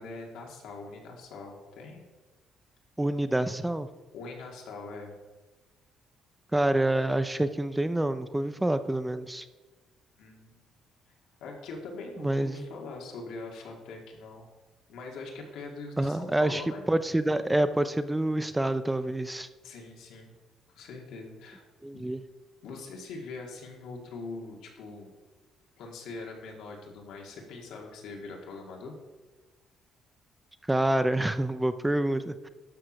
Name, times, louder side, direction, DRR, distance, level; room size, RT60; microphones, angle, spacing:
voice 1, 0.0-2.1 4.1-5.1 10.2-10.6 11.4-14.5 14.9-16.8 19.6-20.3 20.7-21.6 21.9-22.0 22.6-25.2 25.8-29.0, left 3 dB, 80° left, 0 dB, 2.3 m, -42 dB
voice 2, 3.0-3.9 6.5-9.5 12.2-12.7 16.0-16.6 16.9-19.5 21.8-22.2 30.7-32.5, right 1 dB, 5° right, 11 dB, 0.4 m, -27 dB
12.0 x 4.8 x 6.2 m, 1.2 s
cardioid pair, 155°, 0 cm